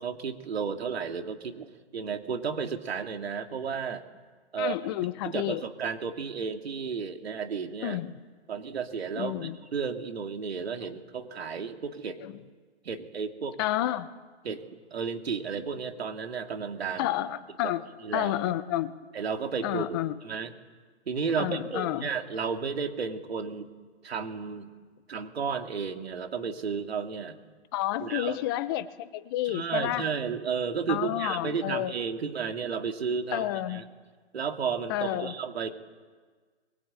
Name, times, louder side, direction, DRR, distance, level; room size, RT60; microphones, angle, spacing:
voice 1, 0.0-4.0 4.5-4.8 5.2-8.0 8.5-12.2 12.8-13.6 14.4-14.6 14.9-17.1 17.6-17.7 18.0-18.3 19.1-20.5 21.1-23.7 24.0-24.7 25.1-27.4 28.0-28.4 29.4-33.8 34.3-35.7, right 6 dB, 65° right, 5 dB, 2.9 m, -33 dB
voice 2, 4.6-5.6 7.8-8.2 9.1-9.6 12.2-12.4 13.6-14.1 17.0-17.8 18.1-18.9 19.6-20.2 21.4-22.1 27.7-30.1 30.9-31.9 33.3-33.8 34.9-35.3, left 14 dB, 20° left, 13 dB, 0.8 m, -30 dB
24.5 x 22.5 x 9.0 m, 1.5 s
hypercardioid pair, 150°, 33 cm